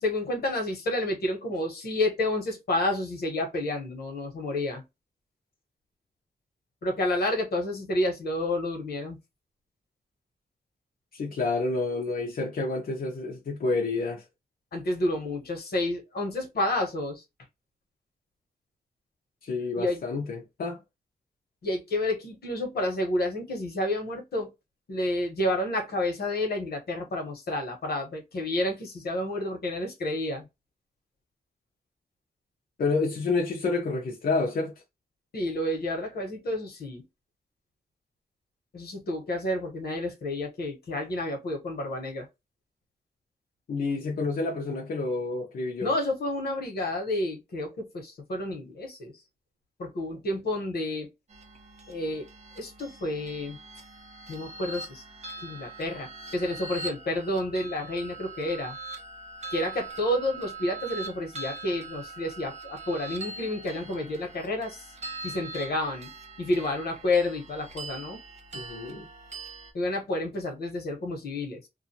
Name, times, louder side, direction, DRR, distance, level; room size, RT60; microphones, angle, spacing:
voice 1, 0.0-4.8 6.8-9.2 14.7-17.2 19.8-20.0 21.6-24.5 24.9-30.5 35.3-37.0 38.7-42.3 45.8-49.1 49.8-51.1 51.9-52.3 52.6-53.6 54.3-55.0 55.4-58.8 59.5-64.9 65.2-66.1 66.4-68.2 69.7-71.6, left 1 dB, 90° left, 1.1 m, -30 dB
voice 2, 11.1-14.2 19.4-20.8 32.8-34.7 43.7-46.0 68.5-69.1, left 3 dB, 65° left, 0.7 m, -29 dB
sound 1, 51.3-69.7, right 3 dB, 45° right, 0.7 m, -42 dB
2.5 x 2.4 x 2.7 m
wide cardioid pair, 175°, 16 cm